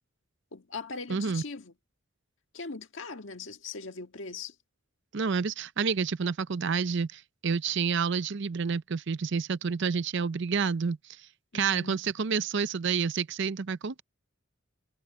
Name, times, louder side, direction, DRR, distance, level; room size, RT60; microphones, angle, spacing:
voice 1, 0.5-1.7 2.5-4.5 11.5-12.0, left 4 dB, 65° left, 1.7 m, -40 dB
voice 2, 1.1-1.4 5.1-11.0 11.5-14.0, right 5 dB, 60° right, 0.6 m, -29 dB
head